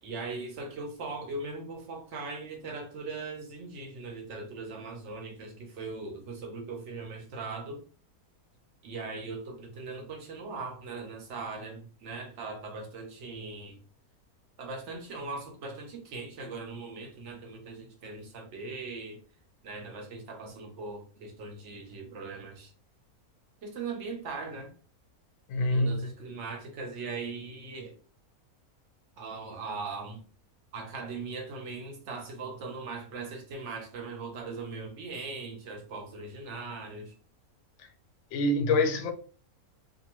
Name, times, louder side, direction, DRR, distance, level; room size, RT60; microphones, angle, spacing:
voice 1, 0.0-7.8 8.8-13.8 14.6-19.2 19.6-22.7 23.6-24.7 25.7-27.9 29.2-30.2 30.7-37.1, right 3 dB, 55° right, 0.9 m, -40 dB
voice 2, 25.5-25.9 38.3-39.1, left 2 dB, 65° left, 0.8 m, -25 dB
2.6 x 2.5 x 2.9 m
omnidirectional pair, 1.6 m